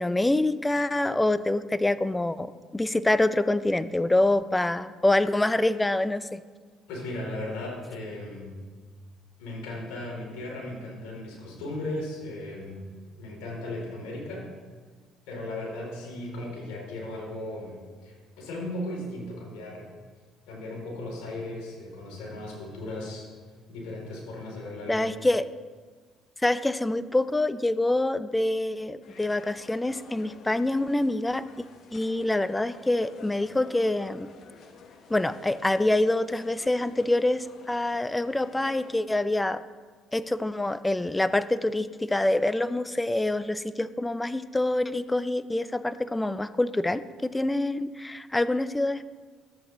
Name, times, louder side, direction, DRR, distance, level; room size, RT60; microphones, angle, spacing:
voice 1, 0.0-6.4 24.9-25.4 26.4-31.5 31.9-34.3 35.1-39.6 40.1-49.0, left 2 dB, 15° left, 14 dB, 0.4 m, -26 dB
voice 2, 6.9-8.5 9.4-12.8 13.2-14.5 15.3-19.8 20.5-23.3 23.7-25.1, left 1 dB, 80° left, -2 dB, 3.0 m, -36 dB
sound 1, 29.0-38.9, left 4 dB, 60° left, 1.0 m, -51 dB
13.5 x 8.0 x 3.0 m, 1.5 s
hypercardioid pair, 65°, 0 cm